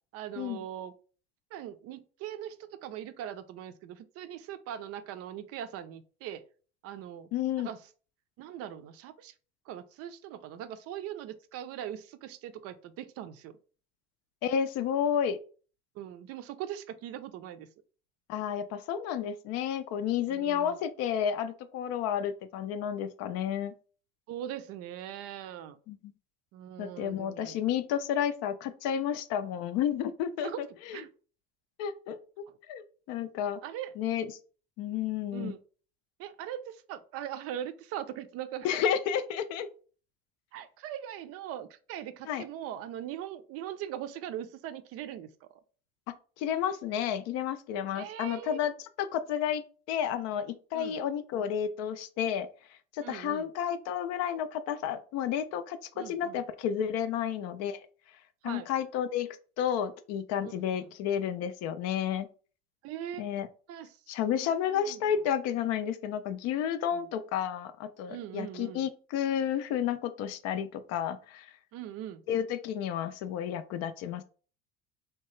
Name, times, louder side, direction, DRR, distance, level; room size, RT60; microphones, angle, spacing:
voice 1, 0.1-0.9 1.5-6.4 6.8-7.3 7.6-7.8 8.4-9.3 9.7-13.6 16.0-17.7 20.3-20.8 24.3-25.8 26.5-27.6 30.4-30.6 30.9-31.1 33.6-33.9 35.3-35.6 36.2-38.7 40.5-45.6 47.9-48.6 50.7-51.0 53.0-53.5 55.9-56.4 58.4-58.7 60.4-60.9 62.8-63.2 63.7-65.1 66.9-67.0 68.1-68.8 71.7-72.2, right 11 dB, 55° right, 0.4 m, -41 dB
voice 2, 7.3-7.7 14.4-15.4 18.3-23.7 25.9-26.1 26.8-31.0 31.8-32.2 32.7-33.6 34.0-34.3 34.8-35.5 38.6-39.7 42.3-42.4 46.4-48.7 49.0-49.6 49.9-52.5 52.9-57.8 58.4-59.3 59.6-62.3 63.2-63.5 64.1-71.5 72.3-74.2, left 9 dB, 60° left, 0.4 m, -31 dB
2.8 x 2.2 x 3.0 m
supercardioid pair, 95°, 30 cm